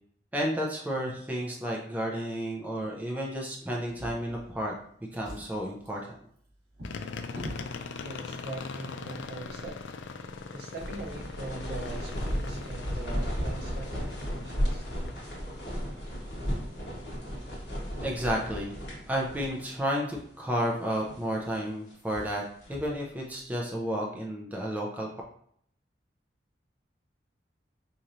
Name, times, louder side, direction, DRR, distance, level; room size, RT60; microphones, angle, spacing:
voice 1, 0.3-4.7 5.1-6.2 18.0-18.8 19.1-22.4 22.7-25.1, equal, 10° right, -2 dB, 0.4 m, -32 dB
Drawer open or close, 3.8-4.8 5.1-7.7 8.6-8.8 9.1-9.2, equal, 80° right, 1.4 m, -44 dB
sound 1, 6.8-15.1, left 4 dB, 80° left, 0.4 m, -41 dB
voice 2, 7.9-10.0 10.5-14.8, right 2 dB, 60° right, 1 dB, 0.7 m, -42 dB
sound 2, 10.3-19.9 20.1-20.2 20.8-21.3 21.9-23.0, equal, 60° left, 1.4 m, -35 dB
4.2 x 3.0 x 2.6 m, 0.64 s
head